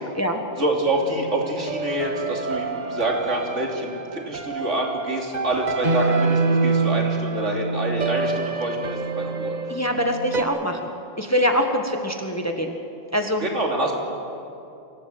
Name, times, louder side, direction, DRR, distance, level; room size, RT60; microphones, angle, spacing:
voice 1, 0.6-9.6 13.4-13.9, right 1 dB, 70° right, 0 dB, 3.3 m, -26 dB
sound 1, 0.9-10.4, right 3 dB, 40° right, 1.2 m, -26 dB
voice 2, 9.7-10.8 11.2-12.8 13.1-13.5, equal, 15° left, 4 dB, 1.5 m, -23 dB
25.5 x 17.0 x 8.0 m, 2.7 s
omnidirectional pair, 1.3 m